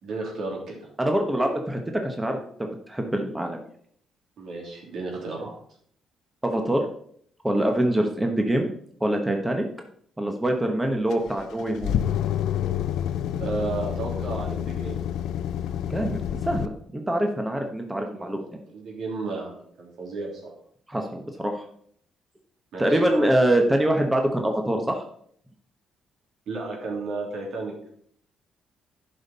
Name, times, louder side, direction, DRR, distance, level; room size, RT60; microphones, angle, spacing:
voice 1, 0.0-0.9 4.4-5.5 13.4-15.0 18.1-20.5 22.7-23.3 26.5-27.9, right 3 dB, 70° right, -1 dB, 3.0 m, -33 dB
voice 2, 1.0-3.6 6.4-6.8 7.4-8.7 9.0-9.7 10.2-12.0 15.9-18.4 20.9-21.6 22.8-25.0, right 1 dB, 10° right, 3 dB, 1.1 m, -24 dB
sound 1, 11.1-16.7, left 10 dB, 80° left, 0.5 m, -28 dB
11.0 x 5.5 x 4.2 m, 0.64 s
cardioid pair, 90°, 0 cm